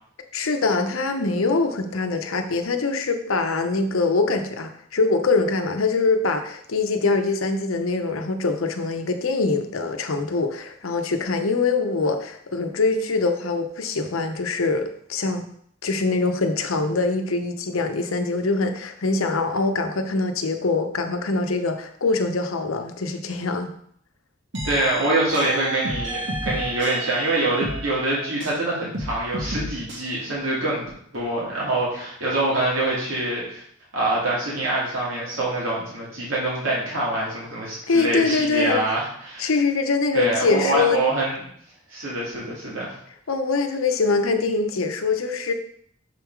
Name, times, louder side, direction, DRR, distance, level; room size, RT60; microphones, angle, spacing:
voice 1, 0.3-15.4 15.8-23.7 37.9-38.8 39.4-41.0 43.3-45.5, left 3 dB, 85° left, 6 dB, 0.8 m, -23 dB
sound 1, 24.5-28.6 28.9-30.0, right 1 dB, 60° right, 1.4 m, -31 dB
voice 2, 24.6-33.6 33.9-39.5 40.1-41.4 41.9-42.9, right 2 dB, 80° right, -6 dB, 2.3 m, -25 dB
6.6 x 3.7 x 4.6 m, 0.65 s
head